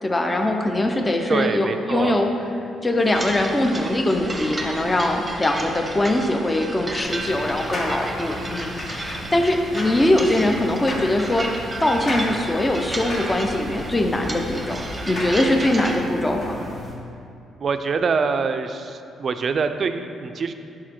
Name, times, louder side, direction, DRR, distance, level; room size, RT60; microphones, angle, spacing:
voice 1, 0.0-2.3 2.8-16.6, left 1 dB, 20° left, 3 dB, 0.5 m, -22 dB
voice 2, 1.3-2.2 17.6-20.5, right 5 dB, 50° right, 9 dB, 0.3 m, -24 dB
sound 1, 3.0-16.0, right 2 dB, 20° right, 0.7 m, -33 dB
sound 2, 7.0-16.9, left 1 dB, 50° left, 1.5 m, -35 dB
5.8 x 4.8 x 4.4 m, 2.6 s
cardioid pair, 90°, 0 cm